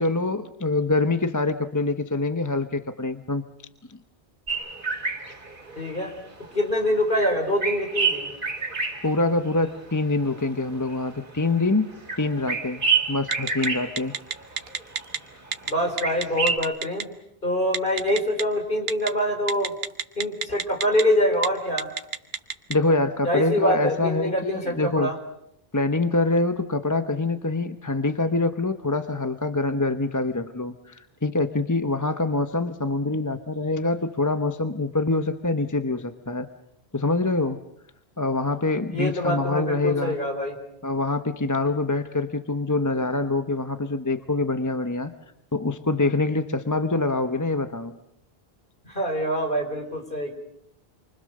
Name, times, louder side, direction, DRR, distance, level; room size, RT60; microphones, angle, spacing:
voice 1, 0.0-3.4 3.9-4.0 9.0-11.9 12.2-12.8 13.1-14.1 22.7-25.1 25.7-36.5 36.9-37.6 38.2-40.2 40.8-45.1 45.5-48.0, left 2 dB, 20° left, 9 dB, 0.9 m, -25 dB
sound 1, 4.5-6.9 7.1-9.9 10.2-15.2 15.5-16.6, right 5 dB, 55° right, 2.9 m, -29 dB
voice 2, 5.8-6.1 6.5-8.3 15.7-17.1 17.4-19.7 20.2-21.9 23.2-25.2 38.9-40.6 48.9-50.3, equal, 55° left, 4 dB, 4.7 m, -25 dB
Telephone, 13.3-13.7 14.0-15.2 15.5-15.7 16.0-17.0 17.7-18.4 18.9-19.1 19.5-21.0 21.3-21.5 21.8-22.7, right 6 dB, 75° right, 1.4 m, -27 dB
28.5 x 24.0 x 6.6 m, 0.78 s
omnidirectional pair, 1.0 m